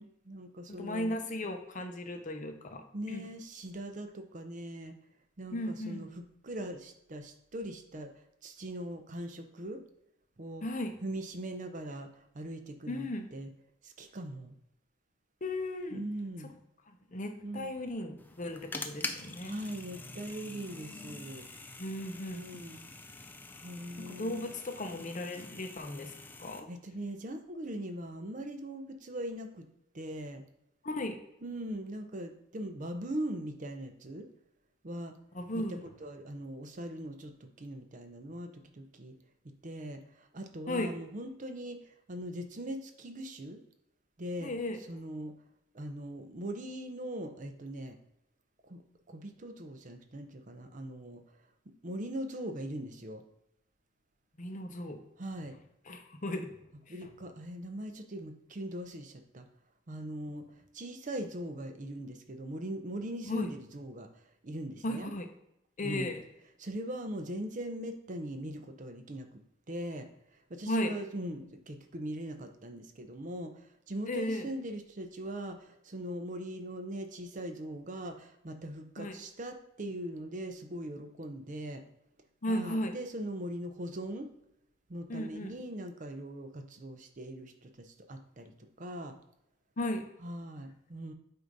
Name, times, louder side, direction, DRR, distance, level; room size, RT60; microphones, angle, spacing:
voice 1, 0.0-1.2 2.9-5.0 5.4-8.1 8.4-9.8 10.4-10.6 11.0-13.5 13.8-14.6 15.9-16.5 17.4-17.7 19.4-21.5 22.2-22.8 23.6-24.5 26.7-29.7 29.9-30.4 31.4-34.3 34.8-35.2 35.7-39.1 39.4-43.6 44.2-44.5 44.9-45.3 45.7-48.0 48.7-48.8 49.1-51.2 51.8-53.2 55.2-55.6 56.9-59.4 59.9-60.5 60.7-64.1 64.4-65.1 65.8-66.1 66.6-69.4 69.7-81.8 82.5-84.3 84.9-88.5 88.8-89.1 90.2-91.1, right 1 dB, 40° right, 7 dB, 0.6 m, -41 dB
voice 2, 0.8-3.2 5.5-6.1 10.6-11.0 12.9-13.3 15.4-16.0 17.1-19.6 21.8-22.4 24.0-26.1 26.4-26.7 30.8-31.2 35.3-35.9 40.7-40.9 44.4-44.8 54.4-55.0 55.9-56.5 57.0-57.1 63.3-63.5 64.8-65.3 65.8-66.2 70.7-70.9 74.1-74.5 79.0-79.2 82.4-82.9 85.1-85.6 89.8-90.0, left 1 dB, 40° left, 6 dB, 0.7 m, -35 dB
sound 1, 18.2-26.6, left 3 dB, 10° left, 0.4 m, -45 dB
7.9 x 2.7 x 5.2 m, 0.83 s
head